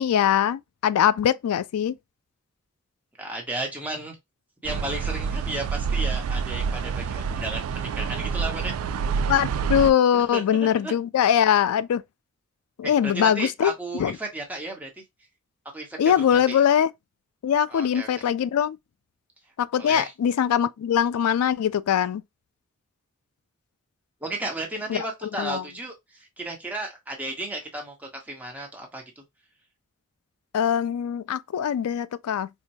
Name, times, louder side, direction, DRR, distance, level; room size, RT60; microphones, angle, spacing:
voice 1, 0.0-2.0 9.3-12.0 12.8-13.7 14.0-14.1 16.0-16.9 17.4-18.8 19.6-22.2 24.9-25.0 25.4-25.6 30.5-32.5, left 9 dB, 85° left, 0.3 m, -22 dB
voice 2, 3.2-4.2 4.6-8.7 10.1-10.9 12.8-15.0 15.7-16.6 17.7-18.3 19.7-20.1 24.2-29.2, right 2 dB, 5° right, 1.0 m, -34 dB
sound 1, 4.6-9.9, right 5 dB, 75° right, 0.3 m, -27 dB
4.5 x 2.1 x 2.6 m
head